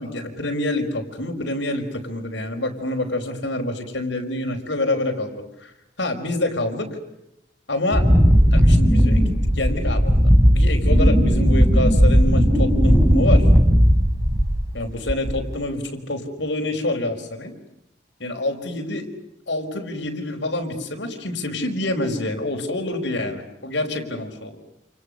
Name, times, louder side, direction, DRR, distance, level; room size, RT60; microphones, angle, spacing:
voice 1, 0.0-5.7 6.0-6.9 7.7-8.1 8.5-13.5 14.7-17.5 18.2-19.1 19.5-24.6, left 1 dB, 70° left, 3 dB, 5.2 m, -27 dB
Wind, 7.9-14.7 15.1-15.5, equal, 15° right, 3.8 m, -16 dB
29.5 x 29.0 x 6.6 m, 0.85 s
head